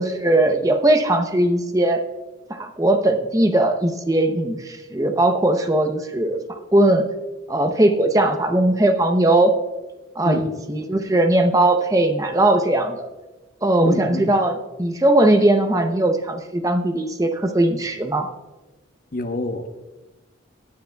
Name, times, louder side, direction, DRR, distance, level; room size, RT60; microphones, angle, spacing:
voice 1, 0.0-2.0 2.5-7.0 7.5-9.5 10.2-13.1 13.6-14.5 14.8-18.3, right 1 dB, 15° right, 6 dB, 0.6 m, -19 dB
voice 2, 13.8-14.2 19.1-19.7, left 2 dB, 45° left, 6 dB, 0.8 m, -26 dB
17.0 x 9.4 x 2.3 m, 1.2 s
head